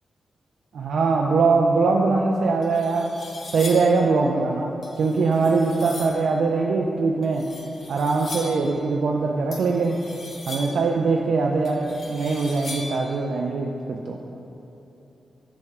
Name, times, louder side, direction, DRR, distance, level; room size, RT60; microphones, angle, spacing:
voice 1, 0.7-3.1 3.4-7.5 7.9-10.0 10.5-14.2, right 4 dB, 75° right, 0 dB, 0.3 m, -22 dB
sound 1, 2.1-2.2 2.6-4.0 4.8-6.2 7.2-8.7 9.5-10.9 11.6-13.1, left 2 dB, 45° left, 0.7 m, -39 dB
6.4 x 4.2 x 3.6 m, 3.0 s
wide cardioid pair, 165°, 0 cm